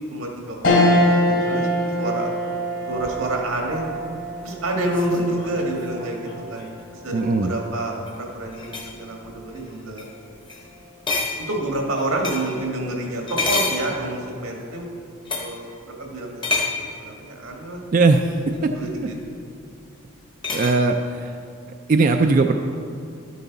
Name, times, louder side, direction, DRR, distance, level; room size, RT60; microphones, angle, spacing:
voice 1, 0.1-0.9 1.2-2.3 2.9-3.9 4.4-10.1 11.4-14.9 15.4-15.7 16.0-16.5 17.0-17.8 18.7-19.2, right 1 dB, 85° right, 0 dB, 1.7 m, -28 dB
sound 1, 0.6-10.2 10.7-10.8 12.1-12.6, left 1 dB, 65° left, 2.5 m, -26 dB
sound 2, 3.0-6.8 7.9-8.2 8.5-9.0 9.5-9.7 10.0-10.1 10.5-10.7 11.1-12.6 13.2-14.4 15.2-15.6 16.4-16.9 18.5-18.6 20.4-20.8, left 3 dB, 25° left, 0.9 m, -29 dB
voice 2, 7.1-7.5 17.9-18.2 18.6-18.7 20.5-20.9 21.9-22.5, right 3 dB, 40° right, 5 dB, 0.3 m, -17 dB
12.0 x 9.3 x 4.0 m, 2.5 s
head